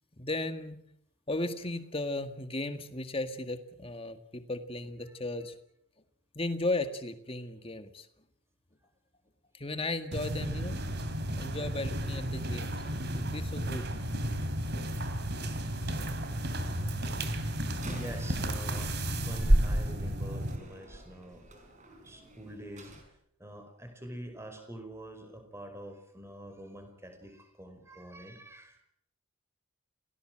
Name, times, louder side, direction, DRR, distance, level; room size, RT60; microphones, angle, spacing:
voice 1, 0.2-0.8 1.3-5.6 6.4-8.1 9.5-10.8 11.3-13.9, left 2 dB, 25° left, 9 dB, 1.9 m, -35 dB
sound 1, 10.1-20.6, right 1 dB, 50° right, 2.9 m, -31 dB
voice 2, 14.9-15.2 17.8-21.5 22.0-22.9 23.4-28.8, right 1 dB, 10° right, 6 dB, 5.0 m, -46 dB
Slam, 17.7-23.1, right 1 dB, 35° right, 5.2 m, -49 dB
29.0 x 18.5 x 7.7 m, 0.70 s
head